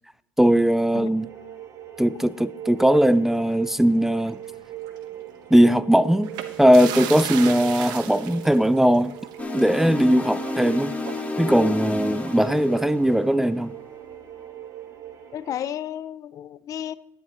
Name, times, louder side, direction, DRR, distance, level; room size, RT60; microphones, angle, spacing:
voice 1, 0.4-1.3 2.0-4.4 5.5-6.3 6.6-9.1 9.5-11.0 11.4-13.7, equal, 5° right, 0.4 m, -19 dB
sound 1, 1.1-15.6, right 12 dB, 50° right, 2.3 m, -40 dB
sound 2, 2.9-4.5 4.8-5.0 6.2-12.7, right 10 dB, 70° right, 1.3 m, -37 dB
sound 3, 9.4-13.7, left 2 dB, 20° left, 1.8 m, -31 dB
voice 2, 15.3-16.9, left 10 dB, 50° left, 0.5 m, -32 dB
12.5 x 11.0 x 3.1 m
supercardioid pair, 85°, 7 cm